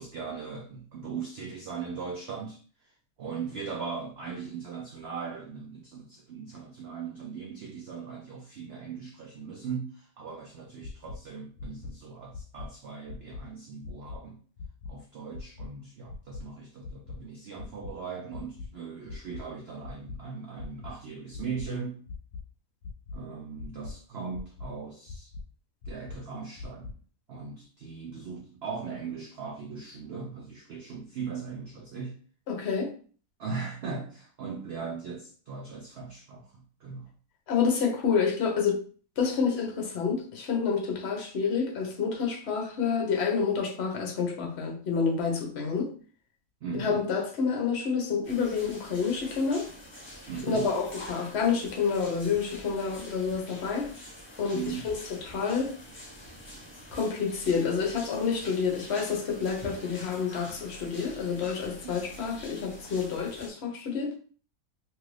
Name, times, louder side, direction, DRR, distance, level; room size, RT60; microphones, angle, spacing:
voice 1, 0.0-14.4 14.9-22.0 23.1-25.3 25.9-27.0 27.3-32.2 33.4-37.1 46.6-47.1 50.3-50.8 54.5-54.9 61.8-61.9, right 5 dB, 80° right, 0.5 m, -39 dB
sound 1, 10.8-11.2 11.6-11.9 12.3-12.7 13.1-13.4 13.8-14.2 14.6-14.9 15.3-15.7 16.1-16.4 16.8-17.2 17.6-17.9 18.3-18.7 19.1-19.4 19.8-20.2 20.6-20.9 21.3-21.7 22.1-22.4 22.8-23.2 23.6-23.9 24.3-24.7 25.1-25.4 25.8-26.2 26.6-26.9, left 4 dB, 75° left, 1.0 m, -40 dB
voice 2, 32.5-32.9 37.5-38.8 39.2-45.9 46.7-49.7 50.5-53.9 54.4-55.7 56.9-64.1, left 5 dB, 55° left, 0.8 m, -28 dB
sound 2, 48.2-63.5, left 1 dB, 20° left, 1.0 m, -46 dB
2.9 x 2.5 x 3.1 m
omnidirectional pair, 1.7 m